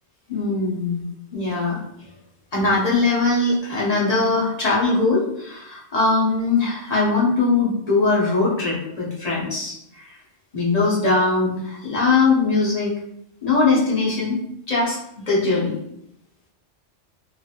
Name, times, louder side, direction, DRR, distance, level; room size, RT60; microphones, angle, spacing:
voice 1, 0.3-1.0 1.3-1.8 2.5-10.1 10.5-12.9 13.4-14.4 14.7-15.8, left 3 dB, 40° left, -5 dB, 0.7 m, -21 dB
2.5 x 2.4 x 2.7 m, 0.76 s
omnidirectional pair, 1.2 m